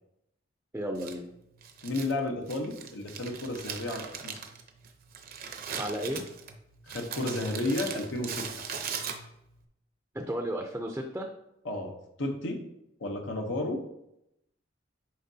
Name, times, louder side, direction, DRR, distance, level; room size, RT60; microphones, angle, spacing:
voice 1, 0.7-1.2 5.7-6.2 10.1-11.3, equal, 10° right, 2 dB, 0.5 m, -33 dB
Crumpling crinkling, 1.0-9.6, right 6 dB, 50° right, 0.7 m, -40 dB
voice 2, 1.8-4.4 6.9-8.5 11.6-12.6 13.0-13.8, left 2 dB, 75° left, 3 dB, 1.0 m, -32 dB
10.0 x 4.6 x 2.8 m, 0.82 s
head